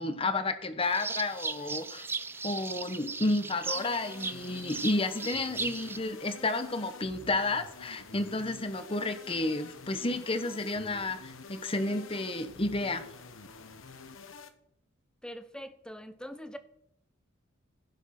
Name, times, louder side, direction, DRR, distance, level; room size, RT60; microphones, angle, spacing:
voice 1, 0.0-2.1 2.4-13.1, left 2 dB, 25° left, 9 dB, 1.0 m, -31 dB
sound 1, 0.8-6.0, right 4 dB, 10° right, 0.4 m, -37 dB
sound 2, 3.6-14.5, left 4 dB, 80° left, 1.1 m, -48 dB
voice 2, 15.2-16.6, equal, 5° left, 9 dB, 0.8 m, -43 dB
16.0 x 6.3 x 5.9 m, 0.73 s
head